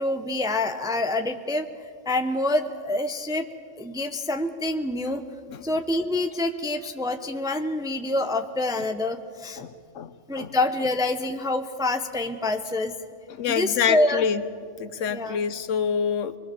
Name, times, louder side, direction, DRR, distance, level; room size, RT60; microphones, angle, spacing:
voice 1, 0.0-1.7 2.1-3.5 3.8-5.2 5.6-9.6 10.3-12.9 13.5-14.2 15.1-15.4, left 2 dB, 5° right, 6 dB, 0.8 m, -26 dB
voice 2, 9.6-10.5 13.3-14.4 14.8-16.4, left 7 dB, 90° left, 13 dB, 1.2 m, -27 dB
25.0 x 21.0 x 7.1 m, 2.1 s
omnidirectional pair, 1.2 m